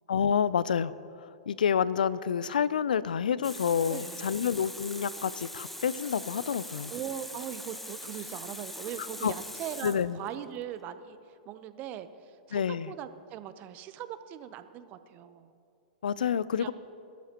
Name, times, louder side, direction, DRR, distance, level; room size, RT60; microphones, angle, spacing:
voice 1, 0.1-0.9 1.5-6.9 9.2-9.3 9.8-10.2 12.5-12.9 16.0-16.7, left 7 dB, 80° left, 18 dB, 0.5 m, -28 dB
Water tap faucet, 3.4-10.4, left 1 dB, 5° left, 1.0 m, -42 dB
voice 2, 3.9-4.4 6.9-11.2 11.5-15.5 16.5-16.7, right 10 dB, 35° right, 12 dB, 0.8 m, -40 dB
22.5 x 12.5 x 3.0 m, 2.7 s
hypercardioid pair, 120°, 5 cm